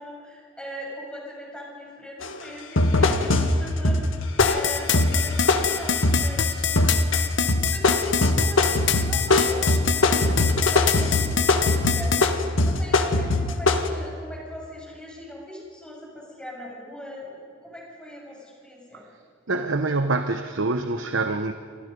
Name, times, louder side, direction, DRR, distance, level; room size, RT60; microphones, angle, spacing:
voice 1, 0.0-7.2 7.7-19.1, equal, 5° left, -3 dB, 7.4 m, -40 dB
sound 1, 2.2-2.4 2.8-6.4 6.8-7.2 7.5-13.9, left 2 dB, 80° left, 1.7 m, -21 dB
sound 2, 4.4-12.3, left 8 dB, 65° left, 1.1 m, -25 dB
voice 2, 19.5-21.6, right 3 dB, 75° right, 7 dB, 1.0 m, -26 dB
29.5 x 24.0 x 5.4 m, 2.2 s
head